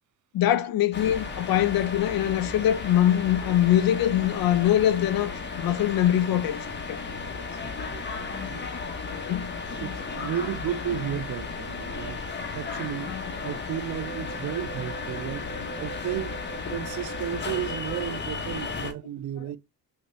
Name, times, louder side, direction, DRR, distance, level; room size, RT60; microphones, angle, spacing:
voice 1, 0.3-6.6 6.9-7.0 9.1-9.5, left 11 dB, 70° left, 0.6 m, -23 dB
sound 1, 0.9-18.9, left 4 dB, 30° left, 0.8 m, -34 dB
voice 2, 7.3-8.7 9.8-12.2 12.5-13.1 13.4-15.5 15.8-16.3 16.7-19.6, right 10 dB, 55° right, 0.5 m, -33 dB
3.1 x 2.8 x 3.0 m
cardioid pair, 85°, 37 cm